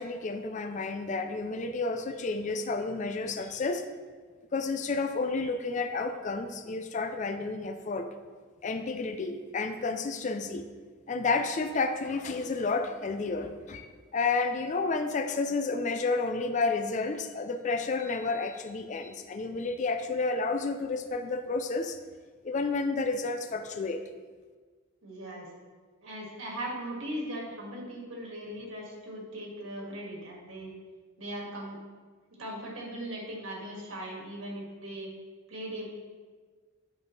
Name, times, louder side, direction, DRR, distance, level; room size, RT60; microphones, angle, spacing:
voice 1, 0.0-3.9 4.5-8.1 8.6-10.7 11.1-22.0 22.4-24.0, left 3 dB, 35° left, 7 dB, 0.4 m, -31 dB
voice 2, 25.0-25.5 26.0-30.7 31.2-31.8 32.4-35.1 35.5-35.9, right 1 dB, 70° right, -2 dB, 2.1 m, -39 dB
10.5 x 5.1 x 3.3 m, 1.5 s
head